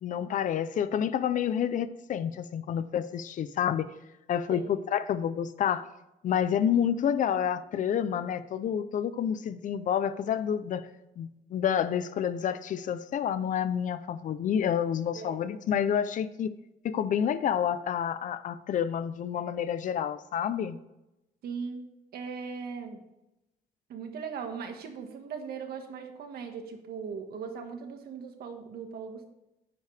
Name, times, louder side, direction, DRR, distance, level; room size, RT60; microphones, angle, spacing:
voice 1, 0.0-3.9 4.3-5.8 6.2-10.9 11.2-16.5 16.8-20.8, left 9 dB, 50° left, 14 dB, 0.6 m, -29 dB
voice 2, 21.4-21.9 22.1-23.0 23.9-29.3, right 6 dB, 75° right, 5 dB, 1.7 m, -39 dB
9.6 x 9.5 x 3.4 m, 0.92 s
cardioid pair, 175°, 16 cm